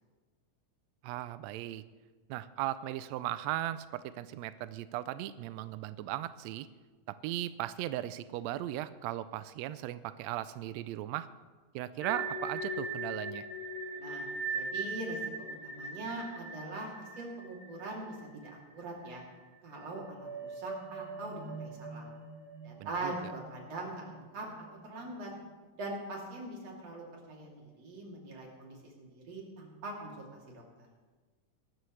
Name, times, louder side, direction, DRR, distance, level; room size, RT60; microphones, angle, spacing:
voice 1, 1.0-1.8 2.3-6.7 7.1-11.3 11.7-13.5 22.8-23.1, right 13 dB, 85° right, 14 dB, 1.5 m, -37 dB
sound 1, 12.0-18.8 19.1-19.2 19.8-25.1, right 3 dB, 15° left, 2.7 m, -41 dB
voice 2, 14.5-15.2 15.5-18.4 18.7-19.2 19.6-22.1 22.6-24.5 24.8-25.3 25.7-30.9, right 2 dB, 50° right, -2 dB, 3.9 m, -42 dB
23.5 x 12.5 x 3.2 m, 1.3 s
omnidirectional pair, 3.6 m